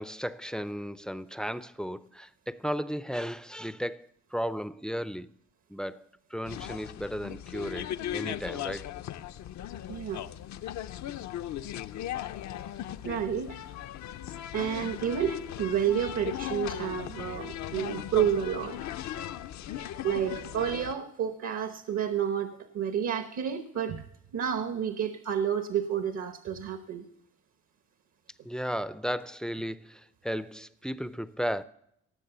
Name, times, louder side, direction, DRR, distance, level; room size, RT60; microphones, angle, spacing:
voice 1, 0.0-5.3 5.7-6.0 6.3-8.9 28.4-31.6, equal, ahead, 0.4 m, -35 dB
sound 1, 6.4-20.9, left 12 dB, 65° left, 0.6 m, -38 dB
voice 2, 9.9-10.2 13.0-13.6 14.5-18.8 19.1-19.2 19.9-24.0 24.3-27.1, right 8 dB, 60° right, 1.1 m, -30 dB
18.5 x 7.4 x 6.8 m
cardioid pair, 90°, 30 cm